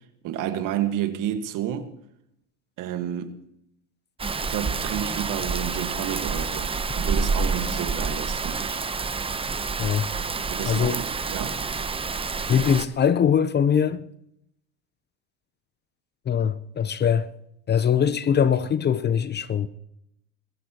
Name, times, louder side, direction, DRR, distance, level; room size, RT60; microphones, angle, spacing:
voice 1, 0.2-1.9 2.8-3.4 4.4-8.9 10.5-11.6, right 10 dB, 55° right, 1.6 m, -30 dB
Rain, 4.2-12.9, right 4 dB, 15° right, 0.8 m, -28 dB
voice 2, 10.7-11.0 12.5-14.0 16.3-17.3 17.7-19.7, left 8 dB, 30° left, 0.7 m, -22 dB
23.0 x 15.0 x 2.9 m
supercardioid pair, 95°, 36 cm